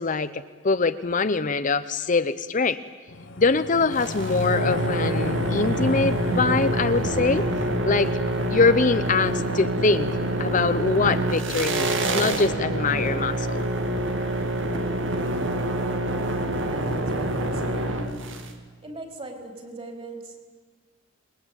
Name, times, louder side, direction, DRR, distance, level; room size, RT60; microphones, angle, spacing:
voice 1, 0.0-2.8 3.4-7.4 7.8-8.2 8.5-10.1 10.4-13.6, left 4 dB, 40° left, 12 dB, 0.8 m, -23 dB
sound 1, 3.1-13.7 14.0-14.1, left 2 dB, 70° left, 1.3 m, -34 dB
sound 2, 3.9-18.5, right 1 dB, 70° right, 2.6 m, -26 dB
voice 2, 16.7-18.3 18.8-20.4, right 2 dB, 30° right, 4 dB, 4.7 m, -39 dB
27.0 x 21.0 x 9.0 m, 1.5 s
head